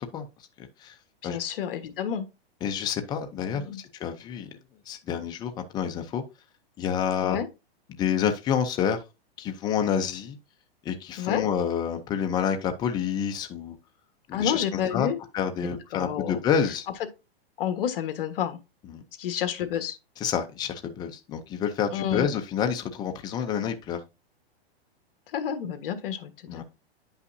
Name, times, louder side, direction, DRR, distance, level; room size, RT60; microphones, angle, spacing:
voice 1, 1.2-2.2 3.5-3.8 7.2-7.5 11.2-11.4 14.3-15.2 15.9-16.4 17.6-18.6 19.2-20.0 21.9-22.3 25.3-26.6, left 9 dB, 60° left, 1.4 m, -29 dB
voice 2, 2.6-4.5 4.9-6.2 6.8-7.4 8.0-9.0 9.4-10.4 10.8-13.8 14.3-14.6 14.9-15.1 15.3-16.8 18.9-19.0 20.2-24.0 26.5-26.6, left 8 dB, 15° left, 0.5 m, -28 dB
9.4 x 5.6 x 2.6 m
hypercardioid pair, 155°, 31 cm